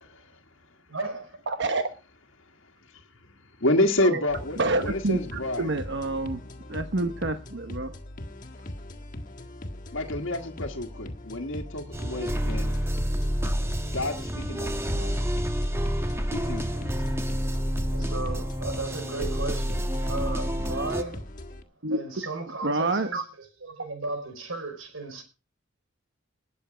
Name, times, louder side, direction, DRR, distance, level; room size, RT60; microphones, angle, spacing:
voice 1, 0.9-1.3 4.0-4.3 17.9-19.8 20.1-21.2 21.9-25.2, right 3 dB, 85° right, 4.8 m, -35 dB
voice 2, 1.5-1.8 4.6-6.4 6.7-7.9 21.8-22.0 22.6-23.2, right 2 dB, 60° right, 1.1 m, -27 dB
voice 3, 3.6-5.7 9.9-12.8 13.9-15.3 16.3-17.1, left 1 dB, 70° left, 1.6 m, -29 dB
sound 1, 4.3-21.6, left 1 dB, 40° left, 1.6 m, -41 dB
sound 2, 11.9-21.0, equal, 15° right, 1.2 m, -28 dB
19.5 x 7.3 x 5.0 m
head